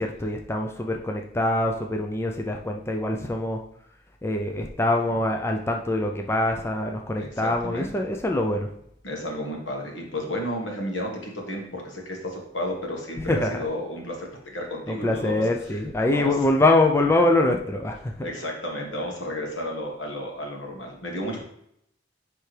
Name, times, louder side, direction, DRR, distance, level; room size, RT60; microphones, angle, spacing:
voice 1, 0.0-3.6 4.2-8.7 13.2-13.6 14.9-18.3, left 2 dB, 15° left, 2 dB, 0.4 m, -24 dB
voice 2, 7.2-7.9 9.0-15.4 16.1-16.3 18.2-21.4, left 1 dB, 75° left, 0 dB, 1.6 m, -32 dB
10.0 x 3.4 x 3.3 m, 0.74 s
head